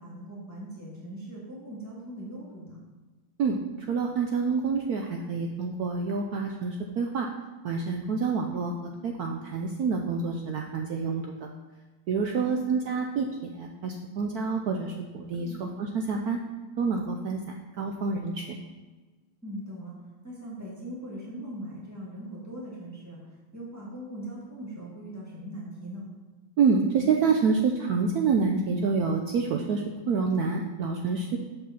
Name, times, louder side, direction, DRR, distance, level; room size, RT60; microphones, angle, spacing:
voice 1, 0.0-2.8 12.4-12.7 15.3-15.6 19.4-19.9 20.2-23.2 23.5-26.0, right 1 dB, 10° left, -6 dB, 1.7 m, -40 dB
voice 2, 3.9-7.3 7.6-11.2 12.1-16.4 16.8-18.6 26.6-31.4, right 5 dB, 75° right, 3 dB, 0.8 m, -27 dB
6.4 x 5.4 x 5.8 m, 1.3 s
omnidirectional pair, 2.2 m